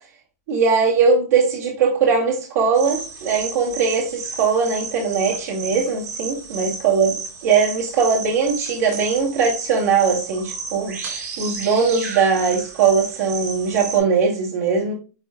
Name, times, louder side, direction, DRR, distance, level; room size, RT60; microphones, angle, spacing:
voice 1, 0.5-14.9, right 5 dB, 70° right, 2.3 m, -20 dB
sound 1, 2.7-14.0, right 4 dB, 90° right, 3.2 m, -33 dB
10.5 x 3.9 x 2.3 m
supercardioid pair, 135°, 9 cm